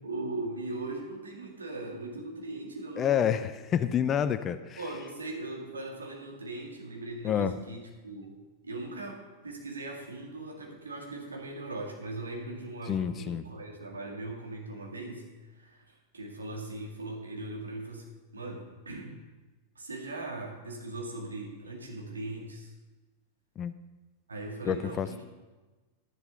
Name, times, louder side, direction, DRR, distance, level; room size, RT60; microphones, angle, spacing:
voice 1, 0.0-3.4 4.8-8.4 8.6-15.2 15.5-18.1 18.3-19.2 19.8-22.7 24.3-25.2, right 2 dB, 75° right, 0 dB, 2.2 m, -39 dB
voice 2, 3.0-4.8 7.2-7.5 12.9-13.4 23.6-23.7 24.6-25.1, left 9 dB, 30° left, 13 dB, 0.5 m, -28 dB
12.0 x 11.0 x 4.0 m, 1.2 s
figure-of-eight pair, 90°, 0 cm